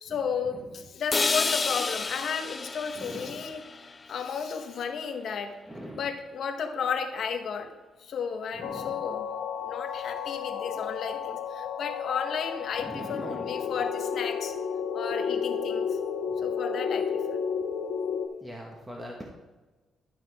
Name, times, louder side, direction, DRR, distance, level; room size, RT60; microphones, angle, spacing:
voice 1, 0.0-3.6 4.1-5.6 5.9-7.7 8.0-9.3 9.6-14.5 14.9-15.9 16.4-17.4, left 6 dB, 65° left, 5 dB, 1.1 m, -33 dB
sound 1, 1.1-5.1, left 4 dB, 30° left, 0.4 m, -31 dB
voice 2, 3.0-3.4 5.7-6.1 8.5-9.0 10.5-10.7 12.8-13.5 16.3-16.4 18.4-19.3, equal, 10° right, -1 dB, 1.4 m, -41 dB
sound 2, 8.6-18.3, left 6 dB, 85° left, 0.6 m, -32 dB
12.0 x 5.7 x 3.6 m, 1.2 s
cardioid pair, 90°, 0 cm